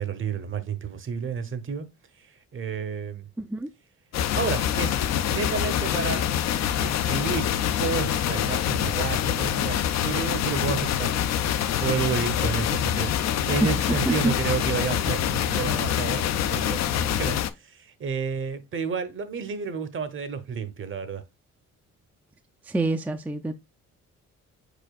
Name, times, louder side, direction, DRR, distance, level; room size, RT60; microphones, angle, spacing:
voice 1, 0.0-1.9 2.2-3.3 4.3-5.0 5.3-6.3 6.8-11.1 11.8-21.2, right 6 dB, 40° right, 0.8 m, -31 dB
voice 2, 3.4-3.7 13.6-13.7 14.0-14.3 22.7-23.5, right 2 dB, 5° right, 0.3 m, -26 dB
sound 1, 4.1-17.5, left 10 dB, 60° left, 0.5 m, -25 dB
4.9 x 4.4 x 2.3 m
cardioid pair, 90°, 30 cm